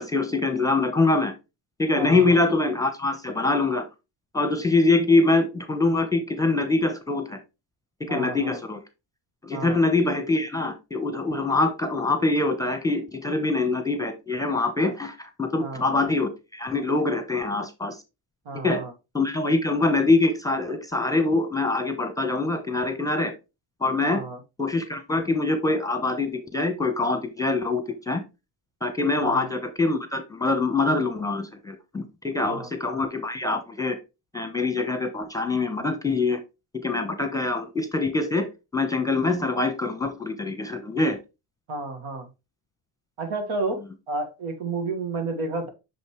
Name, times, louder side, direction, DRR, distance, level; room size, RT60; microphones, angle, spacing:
voice 1, 0.0-1.3 1.8-3.9 4.3-7.4 8.1-8.8 9.4-18.0 18.6-18.8 19.1-23.3 23.8-24.2 24.6-28.2 28.8-34.0 34.3-36.4 36.8-38.5 38.7-41.2, left 3 dB, 5° left, 7 dB, 1.0 m, -24 dB
voice 2, 2.0-2.4 8.1-8.6 9.5-9.8 15.6-15.9 18.5-18.9 24.0-24.4 29.2-29.5 32.4-32.7 41.7-42.3 43.2-45.7, right 3 dB, 80° right, 6 dB, 1.9 m, -31 dB
6.4 x 5.3 x 3.1 m, 0.26 s
cardioid pair, 125°, 50 cm